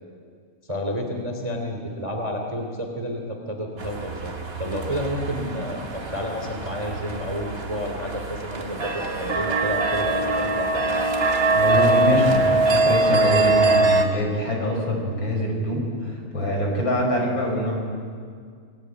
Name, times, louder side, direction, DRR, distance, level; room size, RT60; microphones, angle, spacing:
voice 1, 0.6-4.3 4.6-11.0, equal, 15° right, 3 dB, 1.0 m, -30 dB
sound 1, 3.8-14.0, right 2 dB, 45° right, 1.1 m, -23 dB
voice 2, 11.5-17.8, left 1 dB, 25° left, 1 dB, 5.9 m, -24 dB
29.0 x 21.5 x 9.2 m, 2.1 s
omnidirectional pair, 5.7 m